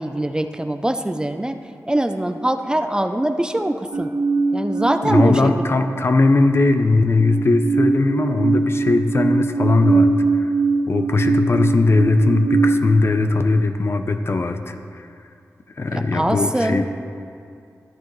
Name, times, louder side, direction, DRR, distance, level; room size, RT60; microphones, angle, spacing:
voice 1, 0.0-1.6 1.9-4.1 4.5-5.5 15.9-16.8, right 1 dB, 15° right, 7 dB, 0.5 m, -22 dB
sound 1, 3.9-6.0 6.3-12.8, right 4 dB, 70° right, 0.9 m, -21 dB
voice 2, 5.0-10.5 10.9-15.1 15.8-16.8, left 3 dB, 45° left, 7 dB, 0.6 m, -19 dB
13.5 x 10.0 x 3.1 m, 2.4 s
wide cardioid pair, 90°, 6 cm